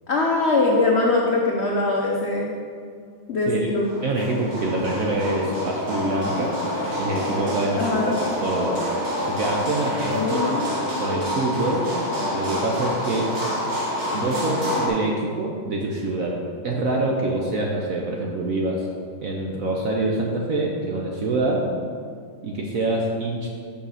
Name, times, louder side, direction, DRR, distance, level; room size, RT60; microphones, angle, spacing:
voice 1, 0.1-2.6 3.3-3.9 7.8-8.2 10.1-10.8, left 3 dB, 85° left, -2 dB, 0.5 m, -22 dB
sound 1, 3.8-14.9, equal, 35° right, 1.7 m, -27 dB
voice 2, 4.0-6.6 7.0-8.1 8.4-8.8 9.2-10.6 11.0-11.8 12.3-13.3 14.1-16.4 16.6-18.9 19.2-21.7 22.4-23.5, right 2 dB, 60° right, -1 dB, 0.9 m, -25 dB
6.7 x 5.7 x 5.6 m, 2.2 s
omnidirectional pair, 2.2 m